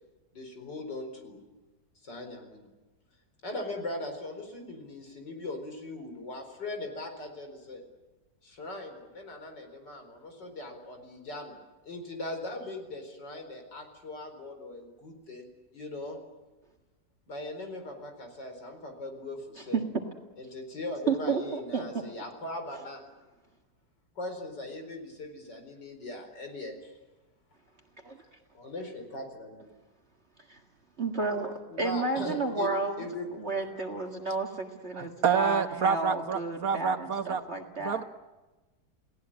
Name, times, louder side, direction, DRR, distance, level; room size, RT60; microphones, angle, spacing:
voice 1, 0.3-1.4 2.0-2.7 3.4-7.8 8.4-11.6 11.8-15.5 15.7-16.2 17.3-19.8 20.4-23.0 24.2-26.7 28.5-29.6 31.7-32.7 33.0-33.3 33.6-33.8, left 2 dB, 85° left, 5 dB, 5.1 m, -39 dB
voice 2, 21.1-22.0 28.0-28.2 30.5-30.6 31.0-33.1 33.4-38.0, right 3 dB, 40° right, 6 dB, 2.0 m, -32 dB
voice 3, 35.0-37.4 37.8-38.0, right 6 dB, 55° right, 9 dB, 1.6 m, -28 dB
29.0 x 18.5 x 8.8 m, 1.2 s
omnidirectional pair, 1.8 m